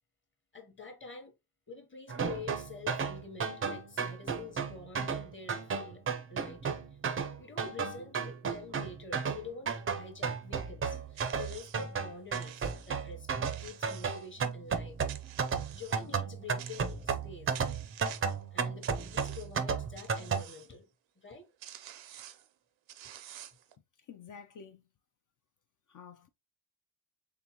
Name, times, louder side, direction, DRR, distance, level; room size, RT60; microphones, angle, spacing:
voice 1, 0.5-1.3 1.7-6.0 6.3-6.8 7.4-15.0 15.7-17.6 18.5-20.9 21.2-21.5, left 4 dB, 25° left, 1.0 m, -47 dB
sound 1, 2.1-20.4, right 6 dB, 30° right, 0.5 m, -34 dB
sound 2, 11.2-11.9 12.3-13.0 13.4-14.5 15.1-16.1 16.6-17.2 17.5-18.4 18.8-19.6 20.0-20.7 21.3-21.4 21.6-22.5 22.9-23.7, right 11 dB, 80° right, 0.6 m, -49 dB
voice 2, 24.0-24.8 25.9-26.3, left 6 dB, 45° left, 0.4 m, -50 dB
3.8 x 3.4 x 2.8 m
cardioid pair, 130°, 44 cm